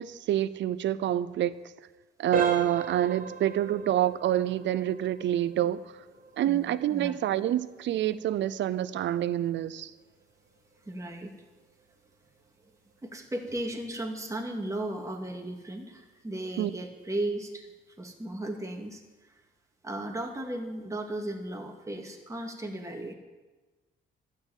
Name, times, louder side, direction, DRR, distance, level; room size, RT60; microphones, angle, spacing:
voice 1, 0.0-1.5 2.2-5.8 6.4-9.9 16.6-16.7, right 12 dB, 65° right, 0.6 m, -27 dB
sound 1, 2.3-13.0 13.3-13.6 14.2-14.3 14.8-14.9, right 4 dB, 45° right, 2.2 m, -40 dB
voice 2, 6.4-7.1 10.9-11.3 13.0-17.7 18.0-19.0 19.8-23.1, right 1 dB, 15° right, 2.2 m, -35 dB
12.5 x 7.7 x 9.0 m
cardioid pair, 90°, 20 cm